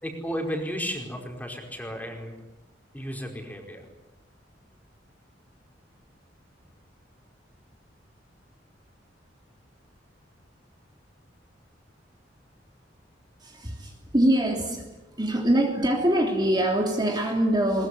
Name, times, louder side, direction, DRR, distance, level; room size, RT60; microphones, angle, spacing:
voice 1, 0.0-2.3 2.9-3.9, equal, 10° left, 2 dB, 4.9 m, -33 dB
voice 2, 13.4-14.9 15.2-17.9, right 1 dB, 25° right, 1 dB, 3.3 m, -24 dB
22.5 x 21.5 x 9.9 m, 1.0 s
head